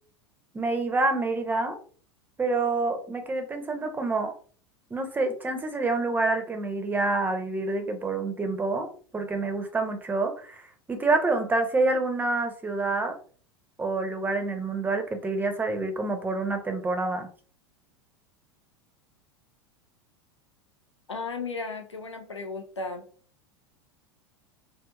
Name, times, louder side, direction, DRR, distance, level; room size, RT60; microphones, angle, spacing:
voice 1, 0.5-1.8 2.4-4.3 4.9-8.9 9.1-13.1 13.8-17.3, right 3 dB, 15° right, 6 dB, 0.5 m, -27 dB
voice 2, 21.1-23.1, left 4 dB, 90° left, 5 dB, 0.4 m, -35 dB
2.6 x 2.5 x 2.3 m, 0.43 s
figure-of-eight pair, 85°, 14 cm